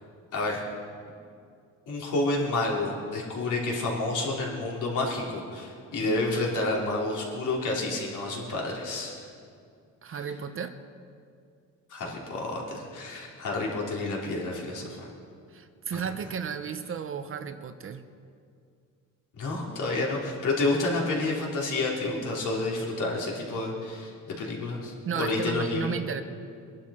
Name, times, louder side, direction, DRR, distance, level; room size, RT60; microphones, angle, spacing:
voice 1, 0.3-0.6 1.9-9.2 10.1-10.2 11.9-15.1 15.9-16.0 19.4-26.0, left 2 dB, 65° left, -2 dB, 3.3 m, -29 dB
voice 2, 10.0-10.7 15.5-18.1 25.1-26.2, right 7 dB, 40° right, 10 dB, 0.7 m, -34 dB
22.5 x 11.5 x 4.3 m, 2.3 s
cardioid pair, 155°, 33 cm